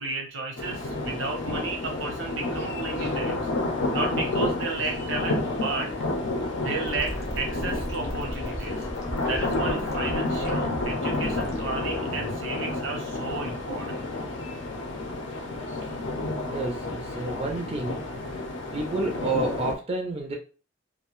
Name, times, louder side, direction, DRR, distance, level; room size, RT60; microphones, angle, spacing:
voice 1, 0.0-3.4 3.9-5.9 6.6-8.8 9.2-14.1, right 3 dB, 80° right, 2 dB, 0.8 m, -33 dB
sound 1, 0.6-19.8, left 2 dB, 80° left, 0.6 m, -30 dB
sound 2, 6.9-12.5, equal, 15° left, 0.6 m, -36 dB
voice 2, 16.5-18.1 18.7-20.4, right 2 dB, 30° right, 1 dB, 0.4 m, -30 dB
2.4 x 2.1 x 3.0 m, 0.37 s
head